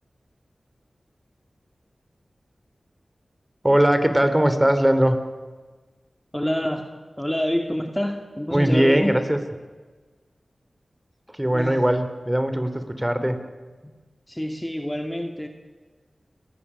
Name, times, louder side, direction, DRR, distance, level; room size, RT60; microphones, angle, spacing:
voice 1, 3.6-5.2 8.5-9.4 11.4-13.4, right 1 dB, 15° right, 9 dB, 3.3 m, -20 dB
voice 2, 6.3-6.9 7.2-9.2 11.5-11.8 13.8-13.9 14.3-15.5, equal, 10° left, 4 dB, 2.3 m, -27 dB
29.0 x 19.5 x 9.9 m, 1.4 s
wide cardioid pair, 55°, 0 cm